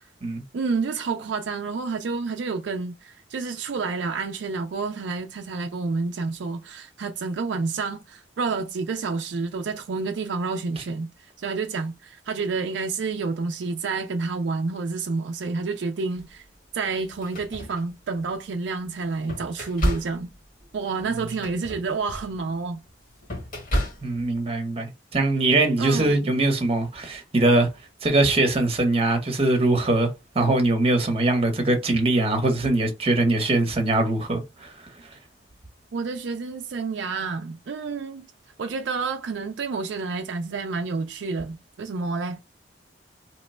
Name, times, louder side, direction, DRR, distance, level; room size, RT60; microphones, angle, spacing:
voice 1, 0.5-11.1 11.4-16.4 16.7-20.3 20.7-22.8 25.8-26.3 35.9-38.3 38.6-42.4, right 4 dB, 70° right, 0.4 m, -29 dB
sound 1, 16.2-16.3 17.0-18.4 18.9-24.4, equal, 50° left, 1.3 m, -31 dB
voice 2, 24.0-27.7 28.0-30.1 30.3-34.7, right 2 dB, 30° right, 0.9 m, -22 dB
2.9 x 2.2 x 4.2 m
head